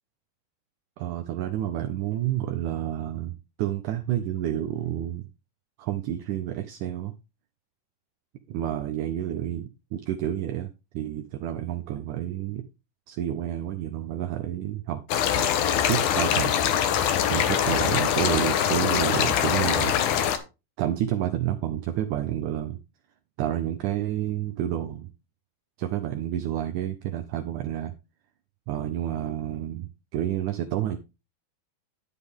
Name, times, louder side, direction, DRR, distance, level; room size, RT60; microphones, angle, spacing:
voice 1, 1.0-5.3 5.8-7.1 8.5-10.7 10.9-12.6 13.1-15.0 15.4-15.5 15.9-16.6 17.3-20.0 20.8-22.8 23.4-25.1 25.8-27.9 28.7-31.0, right 11 dB, 75° right, 2.1 m, -29 dB
sound 1, 15.1-20.4, left 9 dB, 70° left, 2.4 m, -23 dB
10.0 x 8.3 x 3.6 m
omnidirectional pair, 4.0 m